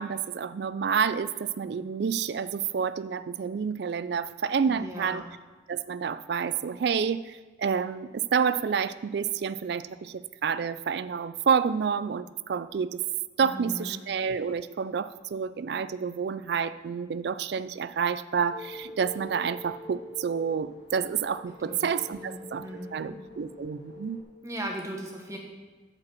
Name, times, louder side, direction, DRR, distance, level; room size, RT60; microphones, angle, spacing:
voice 1, 0.0-5.2 5.7-13.0 13.4-22.6 22.9-24.2, right 6 dB, 60° right, 15 dB, 0.3 m, -29 dB
voice 2, 4.7-5.3 13.4-14.0 21.5-23.2 24.4-25.4, equal, 15° right, 1 dB, 1.3 m, -38 dB
sound 1, 18.5-24.2, left 2 dB, 65° left, 2.1 m, -45 dB
8.3 x 5.4 x 7.1 m, 1.3 s
head